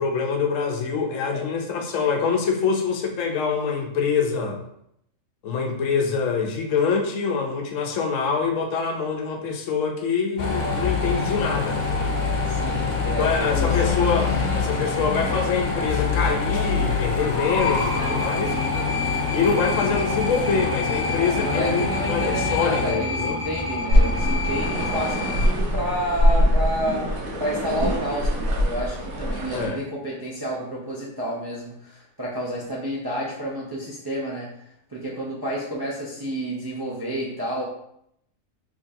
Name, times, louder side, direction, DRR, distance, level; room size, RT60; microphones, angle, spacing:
voice 1, 0.0-4.6 5.4-11.8 13.0-18.5 19.3-23.4 29.5-29.8, left 5 dB, 70° left, 3 dB, 0.9 m, -25 dB
sound 1, 10.4-22.9, left 4 dB, 90° left, 1.2 m, -25 dB
voice 2, 12.5-13.8 21.3-27.1 27.4-34.5 34.9-37.6, equal, 40° right, -5 dB, 0.3 m, -30 dB
sound 2, 17.6-25.5, left 3 dB, 5° right, 0.9 m, -29 dB
sound 3, 23.9-29.7, equal, 85° right, 1.2 m, -22 dB
3.7 x 3.2 x 2.6 m, 0.74 s
omnidirectional pair, 1.4 m